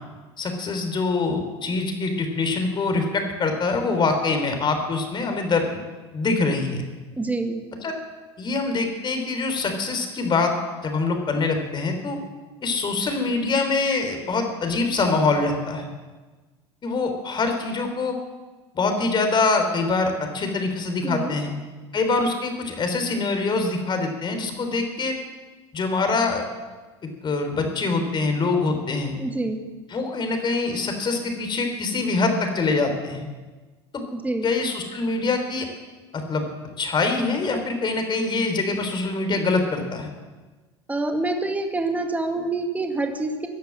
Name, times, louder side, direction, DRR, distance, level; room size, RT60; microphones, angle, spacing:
voice 1, 0.4-5.8 6.1-6.8 7.8-7.9 8.4-10.5 10.8-12.2 12.6-15.9 16.8-18.2 18.7-21.5 21.9-25.2 25.7-26.5 27.2-29.2 29.9-33.3 33.9-34.0 34.4-35.7 36.1-36.5 36.8-40.1, left 3 dB, 35° left, 5 dB, 3.6 m, -24 dB
voice 2, 7.2-7.6 21.0-21.4 29.2-29.6 34.1-34.5 40.9-43.5, right 2 dB, 10° right, 4 dB, 2.2 m, -26 dB
16.5 x 10.5 x 7.7 m, 1.3 s
hypercardioid pair, 75°, 14 cm